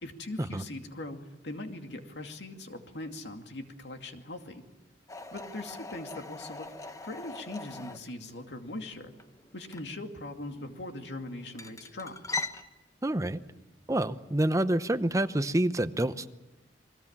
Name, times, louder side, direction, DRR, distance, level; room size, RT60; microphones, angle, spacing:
voice 1, 0.0-4.6 5.3-9.1 9.5-12.2, left 2 dB, 80° left, 5 dB, 2.4 m, -41 dB
sound 1, 5.1-12.6, left 3 dB, 20° left, 1.0 m, -42 dB
voice 2, 13.0-13.4 13.9-16.3, right 1 dB, 20° right, 11 dB, 0.8 m, -27 dB
29.0 x 21.0 x 7.4 m, 1.1 s
head